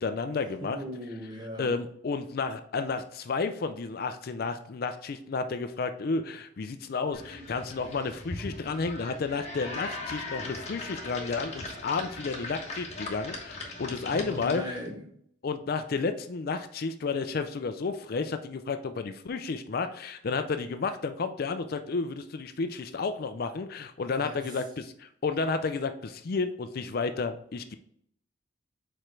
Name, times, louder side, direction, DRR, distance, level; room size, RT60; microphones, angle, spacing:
voice 1, 0.0-0.8 1.6-14.8 15.4-27.7, left 4 dB, 50° left, 9 dB, 0.4 m, -32 dB
voice 2, 0.6-1.8 14.1-15.1 24.2-24.4, equal, 20° right, 1 dB, 1.0 m, -38 dB
sound 1, 7.1-14.9, left 2 dB, 35° left, 1.2 m, -39 dB
4.9 x 4.4 x 4.6 m, 0.67 s
head